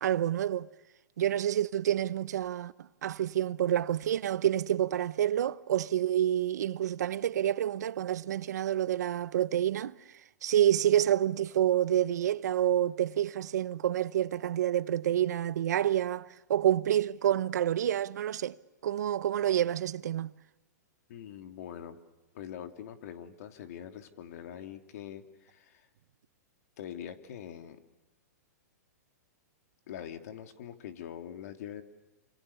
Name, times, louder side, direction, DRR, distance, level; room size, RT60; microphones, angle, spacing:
voice 1, 0.0-0.7 1.2-2.7 3.0-9.9 10.4-18.6 18.8-20.3, right 11 dB, 75° right, 0.9 m, -28 dB
voice 2, 21.1-22.0 22.3-25.9 26.8-27.8 29.9-31.8, left 9 dB, 60° left, 2.8 m, -43 dB
28.0 x 27.0 x 7.1 m
hypercardioid pair, 135°, 9 cm